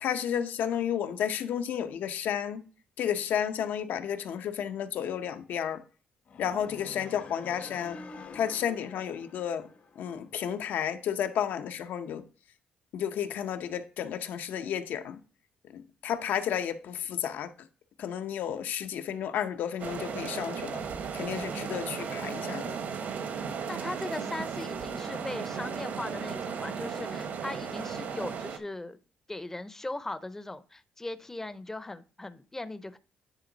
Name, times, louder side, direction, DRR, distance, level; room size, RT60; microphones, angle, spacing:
voice 1, 0.0-2.7 3.0-5.8 6.4-8.0 8.3-9.7 10.0-12.2 12.9-15.2 15.7-17.5 18.0-20.8 21.1-22.8, left 9 dB, 75° left, 0.7 m, -32 dB
sound 1, 6.3-10.4, left 4 dB, 50° left, 0.9 m, -46 dB
sound 2, 19.8-28.6, right 6 dB, 65° right, 1.0 m, -35 dB
voice 2, 23.7-29.0 29.3-33.0, left 2 dB, 15° left, 0.6 m, -39 dB
10.0 x 3.7 x 3.9 m
cardioid pair, 100°, 3 cm